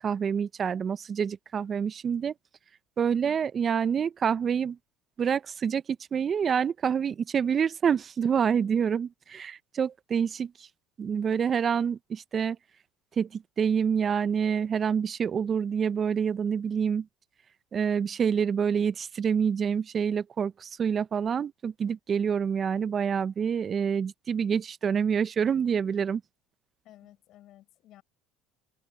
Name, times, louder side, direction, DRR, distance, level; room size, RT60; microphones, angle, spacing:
voice 1, 0.0-2.3 3.0-4.8 5.2-5.8 6.1-10.7 11.0-12.6 13.2-17.1 17.7-26.2, right 7 dB, 40° right, 0.9 m, -27 dB
voice 2, 26.8-28.0, left 14 dB, 60° left, 6.4 m, -54 dB
open air
hypercardioid pair, 75°, 0 cm